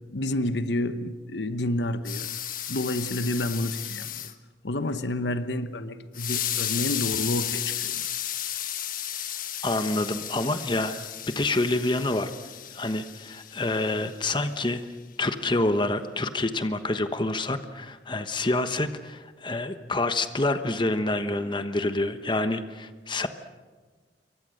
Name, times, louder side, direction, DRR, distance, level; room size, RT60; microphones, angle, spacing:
voice 1, 0.1-2.3 2.7-4.3 4.6-8.0, left 1 dB, 75° left, 1.1 m, -29 dB
sound 1, 2.0-4.3 6.1-14.5, left 11 dB, 50° left, 1.4 m, -33 dB
voice 2, 9.6-12.3 12.7-14.9 15.2-23.3, left 2 dB, 25° left, 1.2 m, -27 dB
28.0 x 23.5 x 6.5 m
head